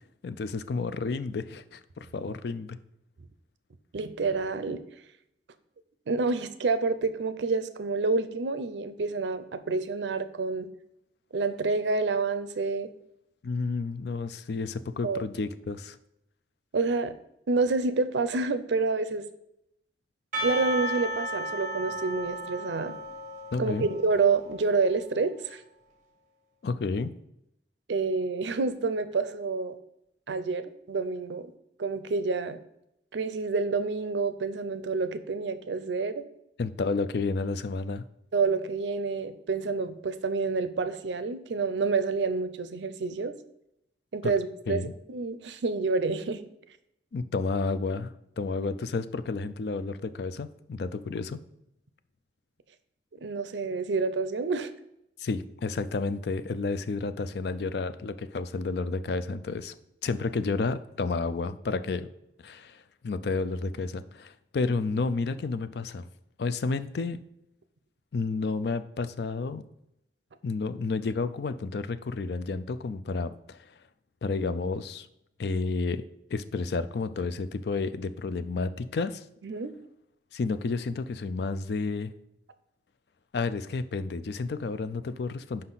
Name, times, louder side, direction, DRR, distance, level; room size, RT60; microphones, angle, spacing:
voice 1, 0.2-2.8 13.4-16.0 23.5-23.9 26.6-27.1 36.6-38.0 44.2-44.3 44.7-44.9 47.1-51.4 55.2-59.7 60.0-62.1 62.4-66.1 66.4-67.2 68.1-69.6 70.4-73.7 74.2-75.1 75.4-76.0 76.3-79.2 80.3-82.1 83.3-85.6, left 4 dB, 65° left, 12 dB, 0.4 m, -31 dB
voice 2, 3.9-4.8 6.1-10.7 11.3-12.9 15.0-15.2 16.7-17.1 17.5-19.3 20.4-23.0 23.6-25.6 27.9-29.8 30.3-31.5 31.8-32.6 33.1-36.2 38.3-43.3 44.1-46.4 53.2-54.7 79.4-79.7, right 4 dB, 85° right, 12 dB, 0.5 m, -28 dB
Percussion / Church bell, 20.3-24.9, right 1 dB, 45° right, 1.4 m, -34 dB
5.7 x 5.2 x 4.0 m, 0.80 s
head